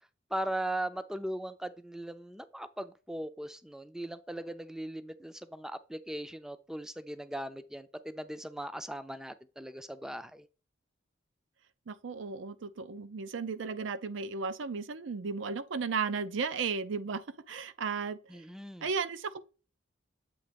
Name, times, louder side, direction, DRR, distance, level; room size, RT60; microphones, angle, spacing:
voice 1, 0.3-10.5 18.3-18.9, right 1 dB, 5° right, 0.4 m, -39 dB
voice 2, 11.9-17.2 17.5-18.2 18.8-19.4, right 5 dB, 85° right, 0.5 m, -34 dB
7.7 x 3.0 x 5.1 m
head